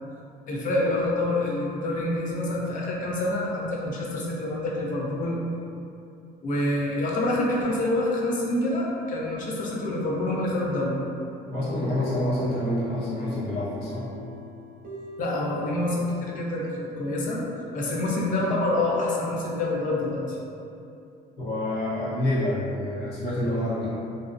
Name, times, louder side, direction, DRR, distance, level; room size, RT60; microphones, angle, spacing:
voice 1, 0.5-5.4 6.4-11.0 15.2-17.4 17.7-20.4, left 1 dB, 50° left, -4 dB, 0.6 m, -27 dB
voice 2, 11.5-14.1 21.4-23.9, left 1 dB, 75° left, -9 dB, 0.9 m, -27 dB
sound 1, 11.8-16.5, left 1 dB, 55° right, 0.6 m, -45 dB
2.5 x 2.0 x 2.4 m, 2.6 s
cardioid pair, 110°, 17 cm